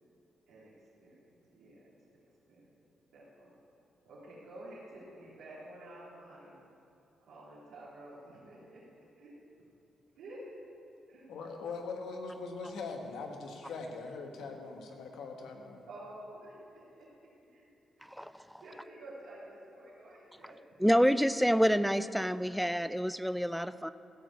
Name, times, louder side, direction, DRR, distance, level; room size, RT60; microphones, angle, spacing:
voice 1, 1.5-1.9 2.5-2.6 3.1-3.5 4.0-6.5 7.2-8.8 9.2-9.4 10.2-10.5 11.1-11.3 15.9-17.7 18.0-18.4 18.6-20.6, right 1 dB, 90° right, -10 dB, 2.9 m, -50 dB
voice 2, 11.3-15.9, left 4 dB, 85° left, 2 dB, 1.4 m, -41 dB
voice 3, 20.8-23.9, equal, ahead, 13 dB, 0.3 m, -27 dB
14.5 x 4.9 x 8.1 m, 2.7 s
cardioid pair, 100°, 0 cm